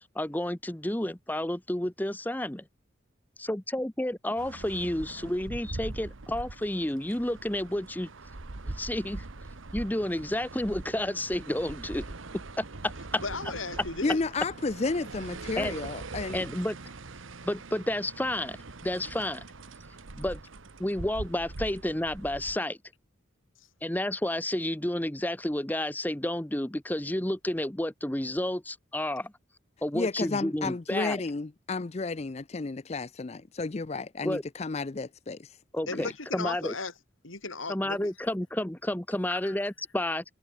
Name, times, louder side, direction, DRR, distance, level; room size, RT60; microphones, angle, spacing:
voice 1, 0.1-2.6 3.4-8.1 8.6-9.2 9.7-12.0 12.6-13.2 15.6-15.8 16.3-16.8 17.4-18.6 18.8-19.4 20.2-20.4 20.8-22.8 23.8-29.3 29.8-31.2 34.2-34.4 35.7-36.7 37.7-40.2, left 1 dB, 10° left, 0.8 m, -31 dB
sound 1, 4.4-22.6, right 2 dB, 85° right, 1.3 m, -42 dB
voice 2, 13.2-14.2 35.9-36.9 37.2-38.1 39.3-39.5, left 3 dB, 90° left, 4.8 m, -36 dB
voice 3, 14.0-16.4 29.9-35.6 35.9-36.1, left 3 dB, 35° left, 0.5 m, -32 dB
head